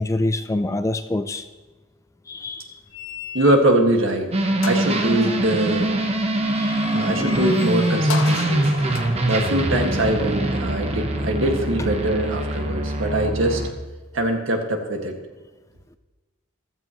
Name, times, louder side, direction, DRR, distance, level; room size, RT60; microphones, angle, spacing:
voice 1, 0.0-1.4 2.3-2.7 6.6-6.7, left 2 dB, 15° left, 10 dB, 0.3 m, -25 dB
sound 1, 2.9-3.8 4.2-4.3 4.6-10.7, left 6 dB, 70° left, 0.9 m, -36 dB
voice 2, 3.3-4.3 4.6-5.9 6.9-8.7 9.2-13.6 14.1-15.2, right 1 dB, 65° right, 2 dB, 1.9 m, -22 dB
sound 2, 4.3-13.7, right 1 dB, 30° right, 0.9 m, -23 dB
15.0 x 13.5 x 3.0 m, 1.2 s
head